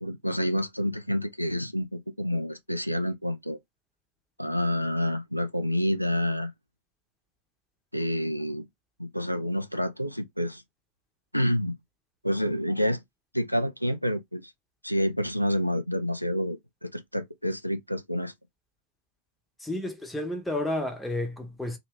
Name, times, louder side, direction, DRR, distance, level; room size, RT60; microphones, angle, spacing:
voice 1, 0.0-3.6 4.4-6.5 7.9-8.7 9.0-10.6 11.3-11.8 12.2-13.0 13.3-14.5 14.8-18.3, equal, 90° left, 0.3 m, -28 dB
voice 2, 19.6-21.8, left 1 dB, 5° left, 0.9 m, -31 dB
2.7 x 2.4 x 3.3 m
figure-of-eight pair, 90°, 0 cm